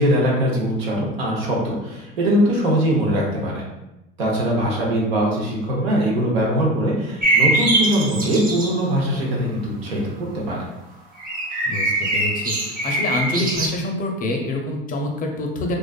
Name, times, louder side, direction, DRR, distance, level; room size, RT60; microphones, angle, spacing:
voice 1, 0.0-3.6 4.2-10.7, equal, 90° right, -3 dB, 0.8 m, -21 dB
sound 1, 7.2-8.8 11.2-13.7, right 2 dB, 30° right, 0.6 m, -22 dB
voice 2, 11.7-15.8, left 1 dB, 30° left, 2 dB, 0.5 m, -26 dB
2.4 x 2.3 x 2.2 m, 0.93 s
hypercardioid pair, 85°, 29 cm